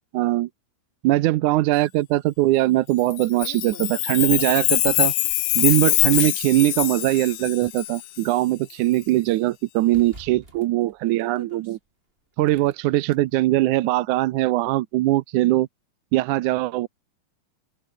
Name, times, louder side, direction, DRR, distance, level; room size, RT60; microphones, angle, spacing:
voice 1, 0.1-0.5 1.0-5.1 5.6-11.8 12.4-15.7 16.1-16.9, right 16 dB, 75° right, 1.9 m, -21 dB
sound 1, 2.4-2.5 3.0-5.0 5.7-6.7 7.4-8.8 9.1-9.2 9.9-11.8 12.4-13.2, right 2 dB, 15° right, 5.0 m, -47 dB
Chime, 3.1-8.2, left 21 dB, 80° left, 1.9 m, -24 dB
open air
omnidirectional pair, 4.1 m